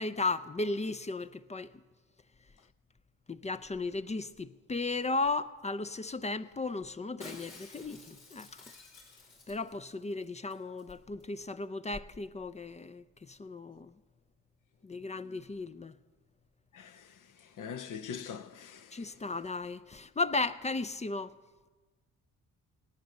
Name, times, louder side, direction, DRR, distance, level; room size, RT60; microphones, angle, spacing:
voice 1, 0.0-1.7 3.3-8.6 9.5-13.9 14.8-15.9 18.9-21.3, left 3 dB, 20° left, 0.5 m, -35 dB
Shatter, 7.2-9.9 10.2-10.3 10.5-10.9 11.2-11.3, left 3 dB, 75° left, 3.0 m, -52 dB
voice 2, 16.7-19.2, left 7 dB, 60° left, 0.9 m, -43 dB
18.0 x 9.4 x 6.5 m
hypercardioid pair, 55°, 36 cm